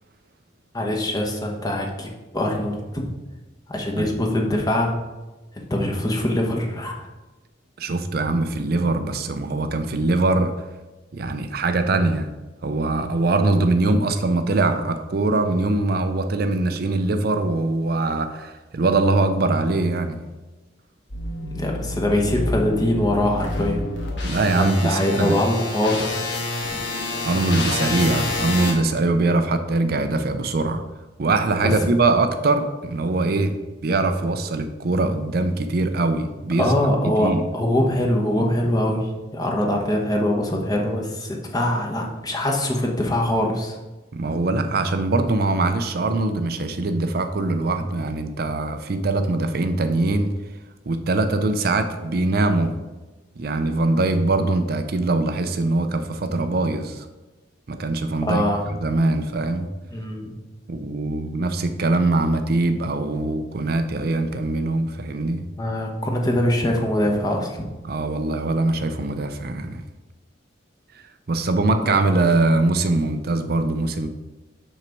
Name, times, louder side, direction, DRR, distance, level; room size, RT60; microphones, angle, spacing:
voice 1, 0.7-3.0 3.7-4.9 5.5-7.1 21.4-23.8 24.5-26.3 31.6-31.7 36.6-43.8 58.2-58.7 59.9-60.3 65.6-67.6 71.8-72.0, left 1 dB, 20° left, 0 dB, 1.1 m, -23 dB
voice 2, 7.8-10.7 11.1-12.3 12.6-20.2 24.2-25.4 27.2-30.8 31.2-33.5 33.8-36.7 37.2-37.4 44.1-50.3 50.9-52.8 53.4-57.1 57.7-59.7 60.7-65.4 67.8-69.8 70.9-74.1, right 2 dB, 55° right, 8 dB, 0.5 m, -22 dB
sound 1, 21.1-28.7, left 2 dB, 75° left, 1.6 m, -28 dB
6.5 x 5.9 x 4.5 m, 1.2 s
head